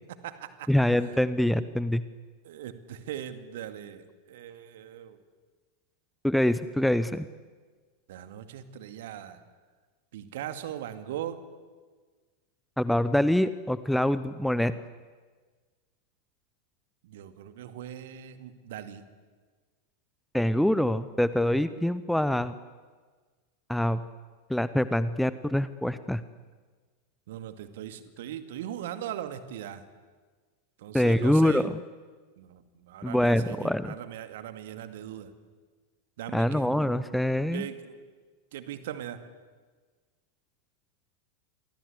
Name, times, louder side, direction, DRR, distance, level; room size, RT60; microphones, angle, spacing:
voice 1, 0.1-0.7 1.0-1.2 2.4-5.2 8.1-9.4 10.1-11.4 17.0-19.1 27.3-29.8 30.8-31.7 32.4-35.3 36.2-36.7 37.5-38.1 38.5-39.2, right 10 dB, 55° right, 10 dB, 2.2 m, -40 dB
voice 2, 0.7-2.0 6.2-7.3 12.8-14.7 20.3-22.6 23.7-24.1 24.5-26.2 30.9-31.7 33.0-33.9 36.3-37.6, left 1 dB, ahead, 14 dB, 0.8 m, -25 dB
28.5 x 23.0 x 8.3 m, 1.4 s
figure-of-eight pair, 90°, 0 cm